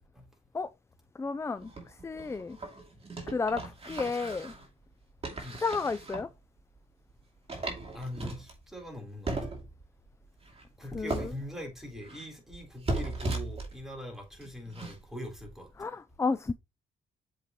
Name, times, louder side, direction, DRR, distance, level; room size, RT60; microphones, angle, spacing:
voice 1, 1.2-2.6 3.3-4.5 5.6-6.3 10.9-11.3 15.8-16.5, left 4 dB, 15° left, 0.3 m, -32 dB
sound 1, 1.6-4.7 5.2-6.3 6.8-6.9 7.1-7.2 7.5-9.0 9.3-9.9 10.4-10.7 11.1-12.2 12.5-14.0 14.4-15.0 15.4-15.5, right 2 dB, 30° right, 2.5 m, -37 dB
voice 2, 7.9-9.5 10.8-15.7, left 1 dB, ahead, 3.7 m, -42 dB
7.4 x 4.8 x 3.0 m
cardioid pair, 90°, 20 cm